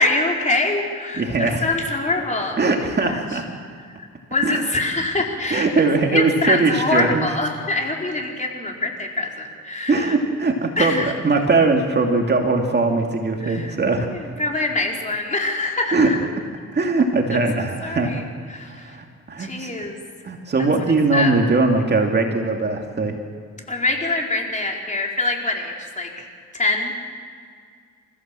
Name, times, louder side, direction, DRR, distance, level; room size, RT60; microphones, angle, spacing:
voice 1, 0.0-3.2 4.3-5.7 6.1-10.1 10.8-11.1 13.4-13.7 14.1-16.2 17.3-18.2 18.5-19.0 19.4-20.0 21.1-21.3 23.7-26.1 26.5-27.0, left 2 dB, 25° left, 0 dB, 4.5 m, -24 dB
voice 2, 1.1-1.6 2.6-3.4 4.4-4.6 5.5-7.3 9.9-14.3 15.9-16.1 16.7-18.2 18.7-19.7 20.2-23.2, right 3 dB, 35° right, 2 dB, 2.5 m, -20 dB
28.5 x 15.5 x 7.7 m, 2.1 s
cardioid pair, 90°, 30 cm